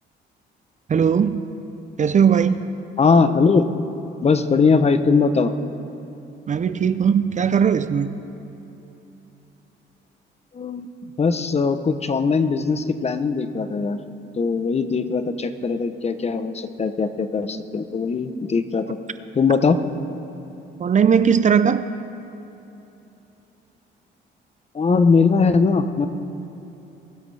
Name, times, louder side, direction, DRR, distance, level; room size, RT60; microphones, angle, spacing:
voice 1, 0.9-1.5 2.0-2.7 6.5-8.1 20.8-21.9, right 7 dB, 40° right, 12 dB, 0.5 m, -18 dB
voice 2, 3.0-3.7 4.2-5.5 10.5-14.0 14.4-19.0 19.3-19.8 24.7-26.1, left 4 dB, 30° left, 10 dB, 0.8 m, -20 dB
22.5 x 12.0 x 3.3 m, 3.0 s
cardioid pair, 90°, 20 cm